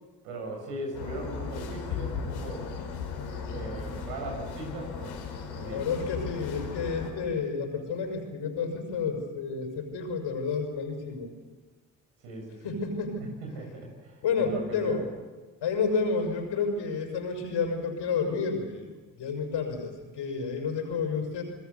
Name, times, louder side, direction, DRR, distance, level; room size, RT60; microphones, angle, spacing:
voice 1, 0.2-2.7 3.5-5.2 5.5-6.1 12.2-12.8 13.4-15.0, right 2 dB, 85° right, 1 dB, 7.3 m, -39 dB
sound 1, 0.9-7.1, left 6 dB, 85° left, 4.5 m, -36 dB
voice 2, 5.6-11.3 12.6-13.2 14.2-15.0 15.6-18.9 19.2-21.4, left 5 dB, 65° left, 4 dB, 6.2 m, -30 dB
27.5 x 20.5 x 7.0 m, 1.3 s
hypercardioid pair, 50°, 45 cm